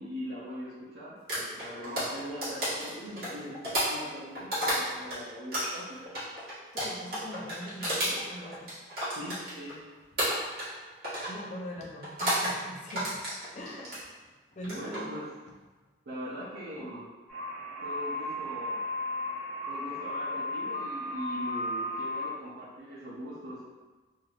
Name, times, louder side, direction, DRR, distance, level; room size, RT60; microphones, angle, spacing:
voice 1, 0.0-6.0 9.2-9.8 14.7-15.3 16.1-17.1 17.8-18.8 19.7-23.6, equal, 85° right, -9 dB, 0.6 m, -41 dB
sound 1, 1.3-5.2 5.5-9.8 10.2-10.8 11.0-11.4 12.0-12.5 12.9-14.0 14.6-15.0, equal, 55° right, 1.2 m, -31 dB
voice 2, 6.7-8.7 11.3-13.2 13.5-14.1 14.5-15.1 16.8-16.9, equal, 40° left, -2 dB, 0.4 m, -42 dB
sound 2, 17.3-22.3, left 1 dB, 5° left, 0.9 m, -34 dB
3.2 x 2.6 x 2.3 m, 1.3 s
head